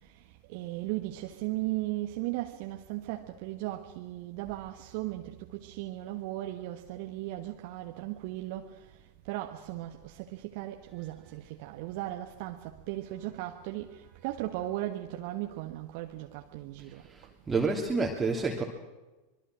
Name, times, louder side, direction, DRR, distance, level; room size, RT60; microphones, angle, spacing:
voice 1, 0.5-8.7 9.3-17.0, right 16 dB, 50° right, 1.5 m, -37 dB
voice 2, 17.1-18.6, right 4 dB, 15° right, 3.0 m, -29 dB
25.5 x 23.0 x 6.3 m
figure-of-eight pair, 90°, 0 cm